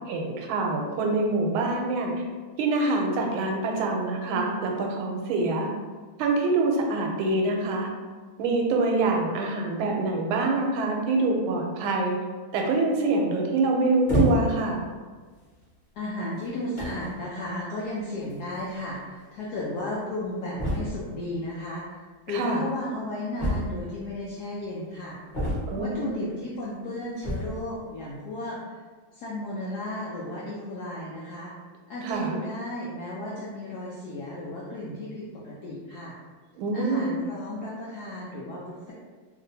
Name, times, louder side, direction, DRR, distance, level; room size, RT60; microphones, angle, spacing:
voice 1, 0.1-2.2 2.6-5.7 6.2-7.9 8.4-12.2 12.5-14.8 22.3-22.6 25.7-26.3 32.0-32.3 36.6-37.1, right 2 dB, 90° right, 1 dB, 1.4 m, -25 dB
sound 1, 14.1-14.7 15.5-15.6 16.4-16.5 16.8-17.1 18.3-18.4 18.6-18.7 18.9-19.0 20.6-21.1 23.4-24.0 25.3-26.0 27.1-27.6, equal, 35° left, 0.8 m, -27 dB
voice 2, 15.9-21.8 22.3-25.2 25.8-28.6 29.1-31.5 31.9-36.1 36.7-38.9, left 1 dB, 80° left, -6 dB, 0.9 m, -34 dB
3.2 x 2.8 x 2.6 m, 1.4 s
omnidirectional pair, 2.2 m